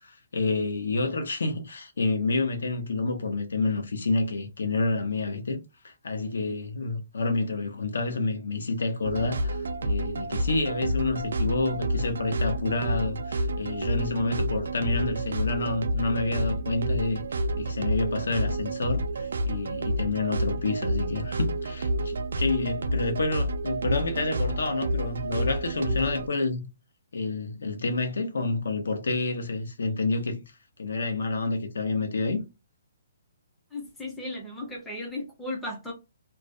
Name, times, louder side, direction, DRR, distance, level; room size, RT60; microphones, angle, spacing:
voice 1, 0.0-26.7 27.1-30.4 30.8-32.4, left 3 dB, 75° left, 0.7 m, -29 dB
sound 1, 9.0-26.3, right 1 dB, 75° right, 0.3 m, -29 dB
voice 2, 33.7-35.9, left 2 dB, 5° left, 0.4 m, -35 dB
2.4 x 2.1 x 2.4 m
hypercardioid pair, 180°, 0 cm